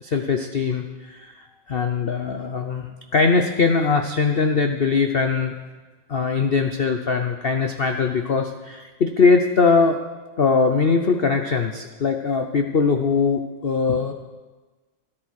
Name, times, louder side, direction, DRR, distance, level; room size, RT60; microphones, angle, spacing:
voice 1, 0.0-5.5 6.1-10.0 10.4-14.1, left 4 dB, 80° left, 5 dB, 0.5 m, -21 dB
13.5 x 11.0 x 6.3 m, 1.3 s
omnidirectional pair, 2.1 m